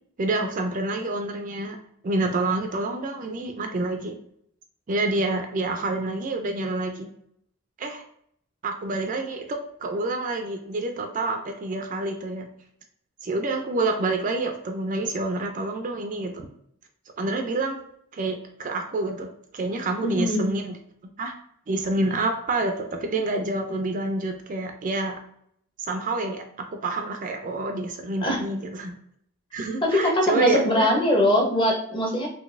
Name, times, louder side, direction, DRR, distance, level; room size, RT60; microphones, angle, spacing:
voice 1, 0.2-1.8 2.0-4.2 4.9-7.1 7.8-8.0 8.6-12.5 13.2-16.5 17.2-17.8 18.1-20.8 21.2-21.3 21.7-25.2 25.9-29.0 29.5-30.9, right 2 dB, 35° right, 4 dB, 0.4 m, -27 dB
voice 2, 20.0-20.5 28.2-28.4 29.8-32.3, left 1 dB, 25° left, 0 dB, 0.7 m, -22 dB
3.8 x 2.6 x 2.5 m, 0.68 s
head